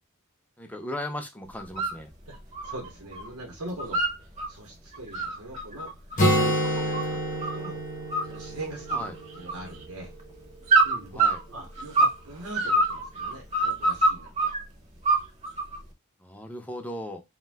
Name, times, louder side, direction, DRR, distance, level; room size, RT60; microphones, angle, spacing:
voice 1, 0.6-2.1 8.9-9.1 11.1-11.4 16.2-17.2, left 1 dB, 5° left, 4 dB, 0.4 m, -37 dB
sound 1, 1.6-2.0 2.3-3.3 3.6-4.5 4.9-7.7 8.1-8.6 8.9-9.9 10.7-12.2 12.5-14.6 15.0-15.8, right 2 dB, 30° right, 0.6 m, -25 dB
voice 2, 2.3-4.0 4.5-5.9 6.3-7.8 8.2-10.1 10.8-14.5, right 1 dB, 85° right, 1 dB, 0.8 m, -42 dB
Acoustic guitar, 6.2-9.9, equal, 35° left, 0.8 m, -27 dB
2.5 x 2.2 x 3.2 m, 0.21 s
head